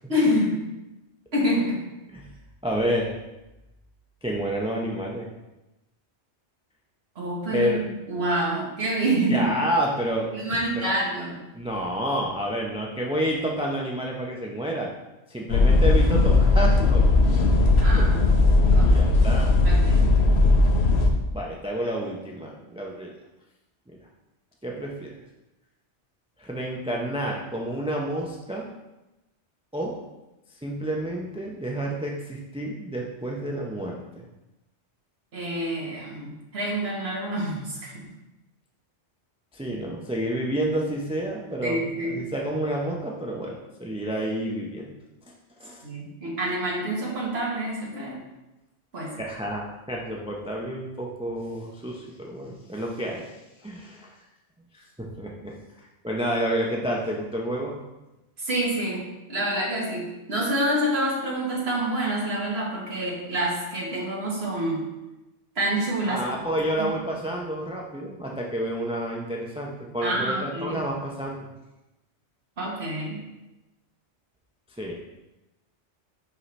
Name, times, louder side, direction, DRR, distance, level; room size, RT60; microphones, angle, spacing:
voice 1, 0.1-0.6 1.3-1.8 7.1-9.5 10.3-11.4 17.8-18.1 18.7-19.0 19.6-20.1 35.3-38.0 41.6-42.2 45.8-48.2 48.9-49.2 58.4-64.9 65.5-66.2 66.8-66.9 70.0-70.8 72.6-73.2, right 1 dB, 65° right, -4 dB, 1.7 m, -27 dB
voice 2, 2.6-3.1 4.2-5.3 7.5-7.8 9.3-11.0 11.5-14.9 15.3-17.0 17.3-17.5 18.0-18.1 18.8-19.6 21.3-23.1 23.9-24.0 24.6-25.1 26.4-28.7 29.7-30.0 30.6-34.3 39.5-44.9 45.6-45.8 49.2-53.3 53.6-54.1 54.7-57.8 66.1-71.5 74.8-75.0, right 1 dB, 5° right, -2 dB, 0.5 m, -29 dB
sound 1, 15.5-21.1, left 2 dB, 70° left, 1.0 m, -18 dB
5.5 x 5.4 x 3.2 m, 0.99 s
omnidirectional pair, 1.2 m